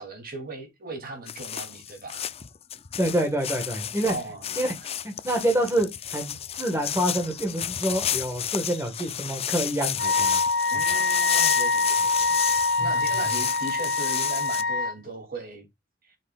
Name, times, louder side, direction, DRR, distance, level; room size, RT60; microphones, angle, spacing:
voice 1, 0.0-2.2 4.0-4.6 4.8-4.9 10.7-15.7 16.0-16.2, right 2 dB, 50° right, 2.8 m, -38 dB
sound 1, 1.3-14.6, left 10 dB, 30° left, 0.5 m, -32 dB
voice 2, 3.0-4.1 4.6-4.7 5.0-10.4 12.8-12.9, right 1 dB, 15° right, 1.5 m, -27 dB
Wind instrument woodwind instrument, 10.0-14.9, left 3 dB, 85° left, 1.7 m, -24 dB
12.5 x 5.7 x 2.4 m
head